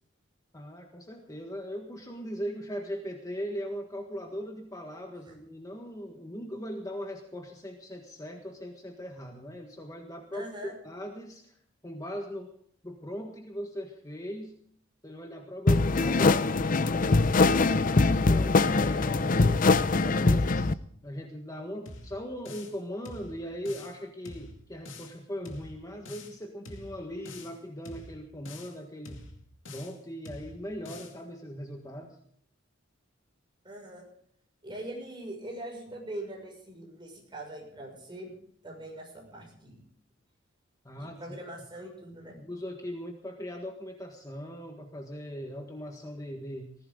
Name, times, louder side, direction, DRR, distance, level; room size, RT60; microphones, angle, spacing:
voice 1, 0.5-11.6 11.8-12.5 12.8-14.5 15.0-19.6 20.0-20.7 21.0-29.2 29.7-32.2 40.8-41.2 42.4-46.7, equal, 20° left, 3 dB, 1.6 m, -39 dB
voice 2, 10.3-10.7 33.6-34.0 34.6-38.3 38.6-39.8 41.0-42.4, right 1 dB, 25° right, 0 dB, 6.3 m, -42 dB
sound 1, 15.7-20.7, left 3 dB, 45° left, 0.6 m, -23 dB
sound 2, 21.9-22.8 23.1-24.0 24.3-25.2 25.5-26.4 26.7-27.6 27.9-28.8 29.1-30.0 30.3-31.2, left 2 dB, 75° left, 2.4 m, -46 dB
19.5 x 15.5 x 3.9 m, 0.63 s
head